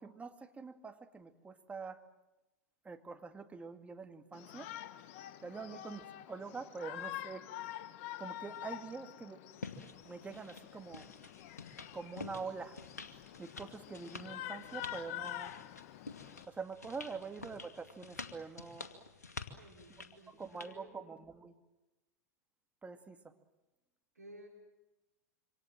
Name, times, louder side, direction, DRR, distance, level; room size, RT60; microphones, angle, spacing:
voice 1, 0.0-2.0 2.8-4.7 5.4-6.0 6.3-7.5 8.2-9.4 10.0-11.1 11.9-12.8 13.4-15.5 16.5-18.9 20.3-21.5 22.8-23.3, right 4 dB, 15° right, 6 dB, 2.2 m, -45 dB
Shout, 4.3-16.5, left 13 dB, 55° left, 1.2 m, -47 dB
sound 1, 9.6-20.7, left 4 dB, 85° left, 2.2 m, -49 dB
voice 2, 19.4-20.9 24.1-24.5, right 1 dB, 90° right, 1 dB, 4.6 m, -56 dB
27.0 x 25.5 x 7.5 m, 1.0 s
hypercardioid pair, 95°, 9 cm